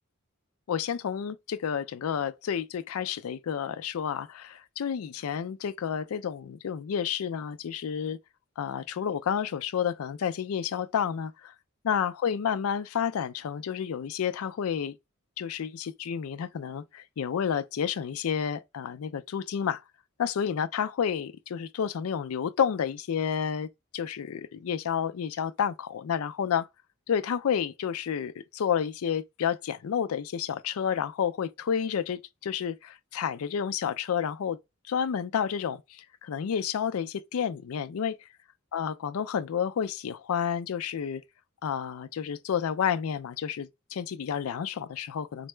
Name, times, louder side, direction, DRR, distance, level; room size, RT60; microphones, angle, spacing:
voice 1, 0.7-8.2 8.6-11.5 11.8-15.0 15.4-19.8 20.2-23.7 23.9-26.7 27.1-34.6 34.9-38.2 38.7-41.2 41.6-45.5, left 8 dB, 85° left, 0.4 m, -30 dB
4.5 x 2.0 x 3.2 m
head